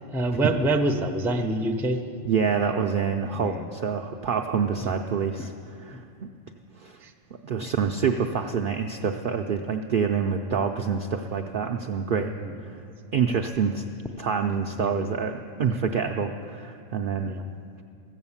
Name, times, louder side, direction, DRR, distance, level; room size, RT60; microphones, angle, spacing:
voice 1, 0.1-2.0 3.3-3.7 4.8-4.9 7.0-7.1 7.6-7.7 12.1-12.5 14.8-14.9 17.2-17.4, right 1 dB, 5° right, 4 dB, 0.3 m, -27 dB
voice 2, 2.2-6.0 6.8-7.0 7.4-12.3 12.6-12.8 13.1-13.8 14.2-15.3 15.6-17.4, right 6 dB, 65° right, 4 dB, 0.5 m, -26 dB
14.0 x 8.2 x 7.2 m, 2.5 s
omnidirectional pair, 1.3 m